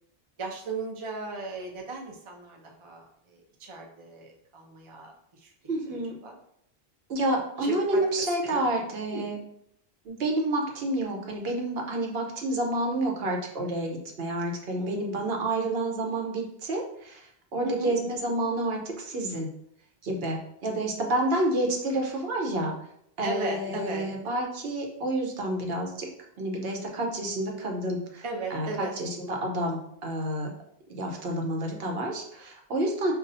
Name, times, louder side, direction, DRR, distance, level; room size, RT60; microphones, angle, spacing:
voice 1, 0.4-5.5 5.9-6.4 7.6-9.3 14.7-15.0 17.6-17.9 23.2-24.0 28.2-28.9, right 3 dB, 35° right, 1 dB, 0.6 m, -37 dB
voice 2, 5.7-6.2 7.1-9.4 10.1-17.2 17.5-19.5 20.0-22.7 23.2-26.1 26.4-28.2 28.5-30.5 30.9-33.1, right 1 dB, 75° right, 1 dB, 0.9 m, -29 dB
5.3 x 2.4 x 2.6 m, 0.73 s
omnidirectional pair, 1.0 m